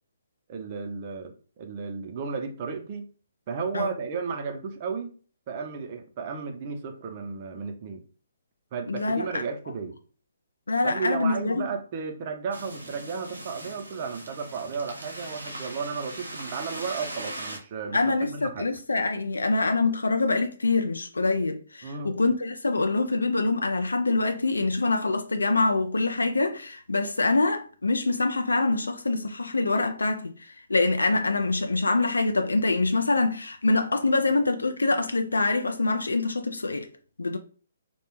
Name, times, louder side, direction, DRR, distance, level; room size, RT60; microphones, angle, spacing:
voice 1, 0.5-3.1 3.5-5.2 5.5-8.0 8.7-10.0 10.8-18.7 21.8-22.1, right 5 dB, 35° right, 0.5 m, -33 dB
voice 2, 8.9-9.4 10.7-11.7 17.9-30.3 30.7-36.9 37.2-37.4, left 3 dB, 80° left, 0.3 m, -25 dB
sound 1, 12.5-17.6, right 1 dB, 90° right, 0.6 m, -39 dB
2.2 x 2.1 x 3.0 m
figure-of-eight pair, 135°, 0 cm